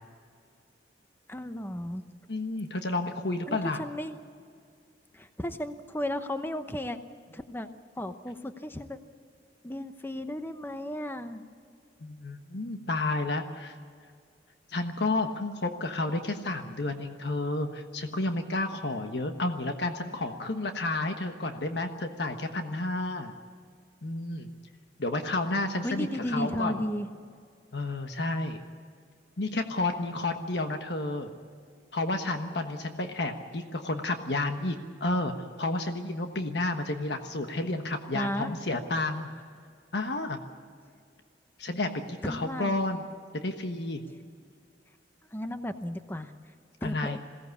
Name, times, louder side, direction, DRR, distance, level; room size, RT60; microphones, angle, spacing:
voice 1, 1.3-2.1 3.5-4.2 5.1-7.0 7.3-7.7 8.0-9.0 9.6-11.4 25.8-27.1 38.1-38.5 42.2-42.9 45.3-46.3 46.8-47.2, left 1 dB, 10° left, 9 dB, 0.9 m, -34 dB
voice 2, 2.3-3.8 12.0-13.8 14.7-23.3 24.0-24.5 25.0-26.8 27.7-28.6 29.4-31.3 31.9-34.7 35.0-39.3 39.9-40.4 41.6-43.0 43.3-44.0 46.8-47.2, left 2 dB, 70° left, 6 dB, 1.3 m, -31 dB
22.0 x 17.0 x 8.3 m, 2.2 s
head